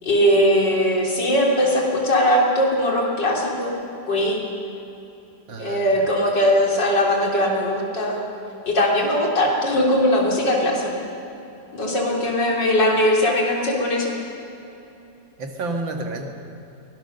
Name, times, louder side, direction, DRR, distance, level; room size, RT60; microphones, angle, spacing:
voice 1, 0.0-3.8 4.1-4.4 5.6-8.2 8.7-11.0 11.7-14.1, equal, 60° left, -1 dB, 4.0 m, -20 dB
voice 2, 5.5-6.1 15.4-16.3, right 2 dB, 75° right, 3 dB, 2.6 m, -30 dB
22.5 x 18.5 x 6.7 m, 2.9 s
omnidirectional pair, 2.1 m